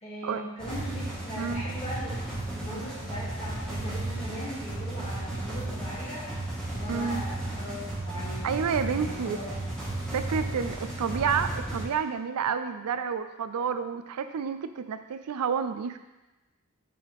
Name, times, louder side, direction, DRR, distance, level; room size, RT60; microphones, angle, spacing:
voice 1, 0.0-2.1 2.5-6.2 6.7-8.5 8.9-9.7, equal, 30° left, -8 dB, 2.3 m, -39 dB
sound 1, 0.6-11.8, right 2 dB, 5° left, 1.6 m, -34 dB
voice 2, 6.9-7.2 8.4-9.4 10.1-16.0, right 6 dB, 90° right, 10 dB, 0.4 m, -30 dB
6.9 x 4.8 x 3.5 m, 1.0 s
head